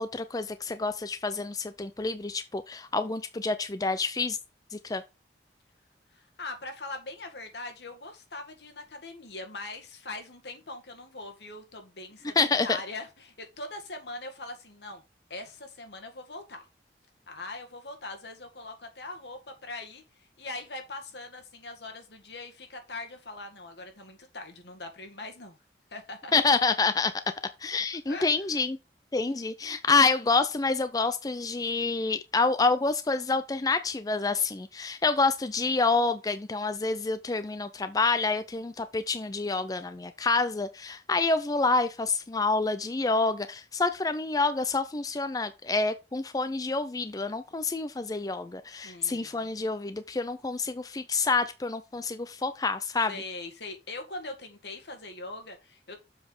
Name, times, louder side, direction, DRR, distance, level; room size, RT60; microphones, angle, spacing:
voice 1, 0.0-4.4 4.7-5.0 12.4-12.8 26.3-27.1 27.6-28.8 29.1-53.1, left 3 dB, 20° left, 0.4 m, -27 dB
voice 2, 6.1-15.0 15.3-16.6 17.3-20.0 20.4-25.6 25.9-26.3 28.1-28.5 48.8-49.5 53.1-56.0, left 2 dB, 75° left, 2.1 m, -41 dB
7.3 x 5.7 x 4.8 m
head